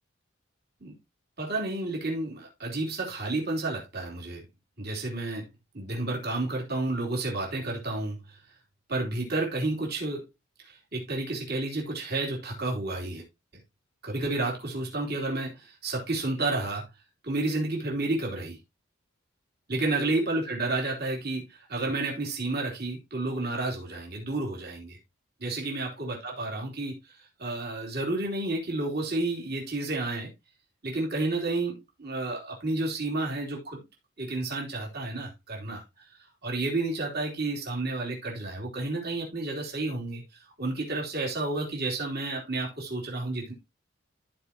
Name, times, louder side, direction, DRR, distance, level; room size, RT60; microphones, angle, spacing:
voice 1, 1.4-4.4 4.8-5.5 5.7-8.4 8.9-10.2 10.6-13.2 14.0-16.9 17.2-18.6 19.7-25.0 25.4-30.3 30.8-33.8 34.2-36.1 36.4-43.5, right 2 dB, 50° right, 3.1 m, -31 dB
14.5 x 4.8 x 2.8 m
head